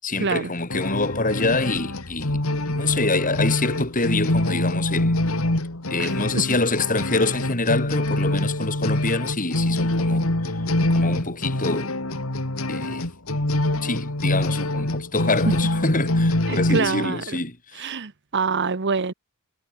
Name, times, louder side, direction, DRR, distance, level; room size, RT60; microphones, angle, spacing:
voice 1, 0.0-2.4 2.7-5.2 5.9-12.0 12.7-13.1 13.8-17.9, left 3 dB, 40° left, 7.2 m, -26 dB
sound 1, 0.7-16.8, left 1 dB, 70° left, 2.7 m, -25 dB
voice 2, 16.5-17.4 17.8-19.1, right 4 dB, 55° right, 1.1 m, -25 dB
head